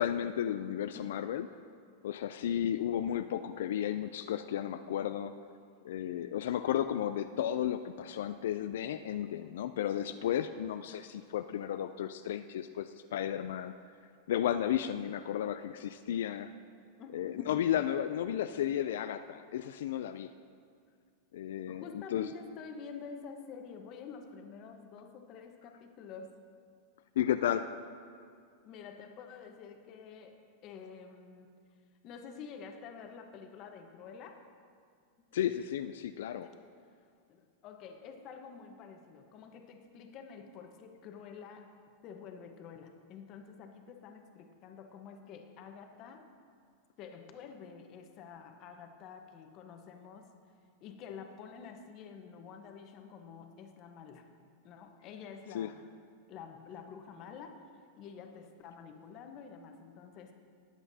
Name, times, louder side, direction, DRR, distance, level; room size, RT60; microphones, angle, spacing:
voice 1, 0.0-1.5 2.0-5.3 5.8-13.7 14.3-16.5 17.1-20.3 21.3-21.8 22.1-22.3 27.2-27.6 35.3-36.5 55.5-55.7, left 10 dB, 80° left, 9 dB, 0.3 m, -33 dB
voice 2, 17.0-17.7 21.7-26.4 28.6-31.5 32.0-34.4 36.4-36.7 37.3-41.7 42.0-46.3 47.0-50.3 50.8-54.3 54.6-55.8 56.3-57.7 58.0-60.3, left 6 dB, 40° left, 4 dB, 1.1 m, -48 dB
18.0 x 8.0 x 2.8 m, 2.3 s
supercardioid pair, 135°, 0 cm